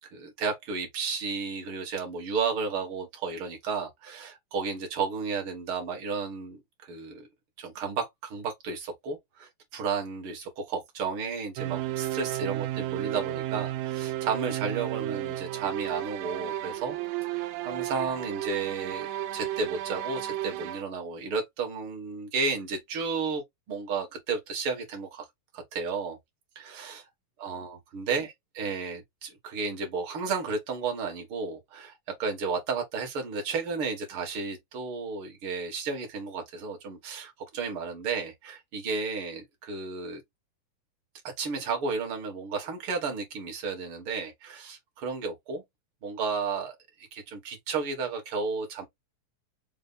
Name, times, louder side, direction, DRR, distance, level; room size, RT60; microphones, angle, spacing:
voice 1, 0.0-7.3 7.6-17.0 17.3-25.3 25.5-26.2 26.6-27.0 27.4-40.2 41.4-45.6 46.0-48.9, right 5 dB, 50° right, 1.7 m, -33 dB
sound 1, 11.6-20.8, right 14 dB, 80° right, 2.2 m, -33 dB
5.5 x 2.3 x 3.9 m
omnidirectional pair, 4.0 m